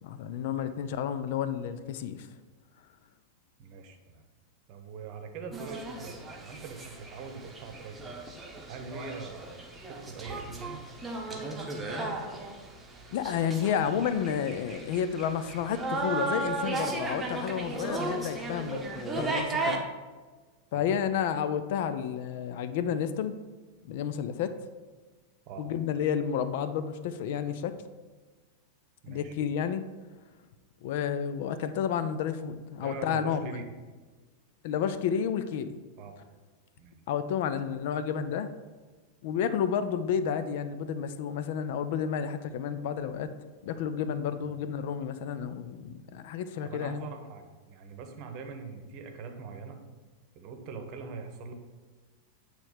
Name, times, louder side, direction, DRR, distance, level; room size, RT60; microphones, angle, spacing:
voice 1, 0.0-2.3 13.1-19.8 20.7-23.3 23.9-24.6 25.6-27.7 29.1-29.9 30.8-33.6 34.6-35.8 37.1-38.5 39.2-43.3 43.6-47.1, left 8 dB, 50° left, 11 dB, 0.4 m, -31 dB
voice 2, 3.6-4.2 4.7-8.2 8.6-11.5 20.7-21.1 25.5-25.6 29.0-29.3 32.8-33.7 36.0-36.2 36.8-37.0 44.4-44.6 46.6-49.8 50.3-51.5, right 5 dB, 40° right, 5 dB, 0.9 m, -43 dB
sound 1, 5.5-19.8, right 2 dB, 10° right, 0.9 m, -35 dB
8.3 x 3.2 x 5.0 m, 1.3 s
figure-of-eight pair, 90°, 0 cm